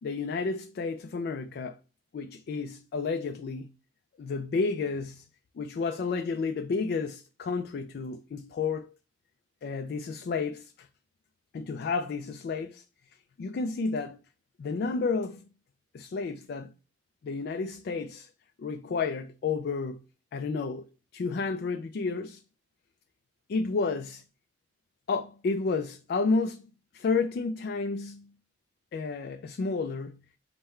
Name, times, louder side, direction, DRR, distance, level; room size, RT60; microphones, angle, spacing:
voice 1, 0.0-1.8 2.1-3.7 4.2-5.3 5.6-8.9 9.6-10.9 11.5-12.8 13.4-14.2 14.6-15.5 15.9-16.7 17.2-18.3 18.6-20.0 20.3-20.8 21.1-22.4 23.5-24.2 25.1-26.7 26.9-28.3 28.9-30.2, left 4 dB, 60° left, 0.3 m, -31 dB
5.5 x 2.1 x 4.3 m
head